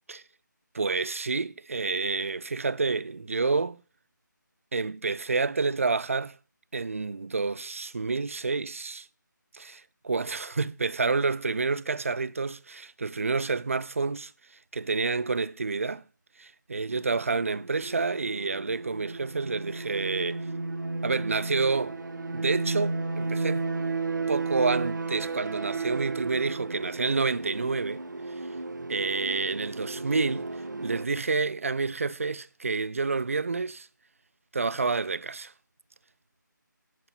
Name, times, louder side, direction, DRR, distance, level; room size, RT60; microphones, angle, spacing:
voice 1, 0.7-3.8 4.7-6.4 6.7-9.1 9.5-14.3 14.7-16.0 16.4-20.5 21.0-22.0 22.3-23.7 24.3-28.0 28.9-30.5 30.8-33.9 34.5-35.5, right 4 dB, 45° right, 0.4 m, -29 dB
sound 1, 16.9-31.1, right 3 dB, 65° right, 1.0 m, -33 dB
10.5 x 4.4 x 5.5 m
figure-of-eight pair, 170°, 11 cm